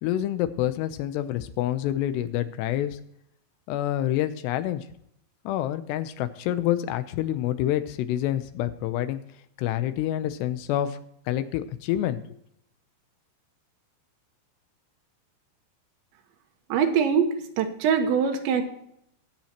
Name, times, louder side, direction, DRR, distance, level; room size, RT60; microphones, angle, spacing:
voice 1, 0.0-3.0 3.7-4.8 5.5-9.2 9.6-11.0 11.3-12.2, left 12 dB, 80° left, 11 dB, 2.7 m, -27 dB
voice 2, 16.7-18.6, right 7 dB, 75° right, 4 dB, 3.5 m, -23 dB
21.0 x 7.4 x 2.9 m, 0.72 s
omnidirectional pair, 5.3 m